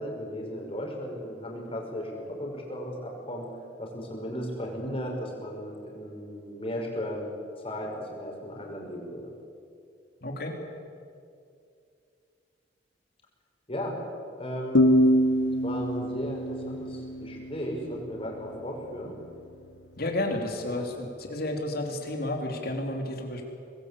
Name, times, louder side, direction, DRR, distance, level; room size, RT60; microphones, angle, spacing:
voice 1, 0.0-3.5 3.8-7.3 7.6-9.2 13.7-14.0 14.4-15.0 15.6-19.1 20.7-20.9, equal, 35° left, 0 dB, 5.8 m, -35 dB
voice 2, 10.2-10.6 20.0-23.5, left 1 dB, 60° left, 3 dB, 3.8 m, -31 dB
sound 1, 14.7-18.2, equal, 80° left, 1.4 m, -24 dB
25.0 x 20.5 x 8.6 m, 2.4 s
head